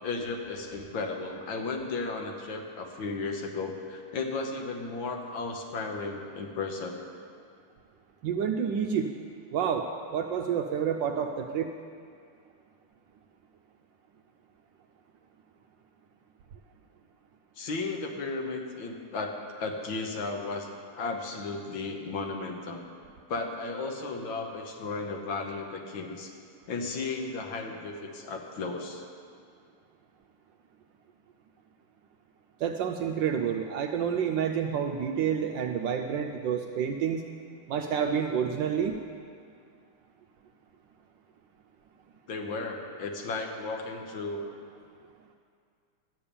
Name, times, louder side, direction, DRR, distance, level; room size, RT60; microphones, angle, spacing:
voice 1, 0.0-7.0 17.6-20.7 21.0-22.8 23.3-26.3 26.7-29.0 42.3-44.5, left 3 dB, 65° left, 2 dB, 1.8 m, -34 dB
voice 2, 8.2-9.1 9.5-9.8 10.1-11.7 32.6-37.2 37.7-39.0, right 7 dB, 70° right, 4 dB, 1.1 m, -29 dB
12.0 x 8.7 x 6.9 m, 2.3 s
omnidirectional pair, 2.4 m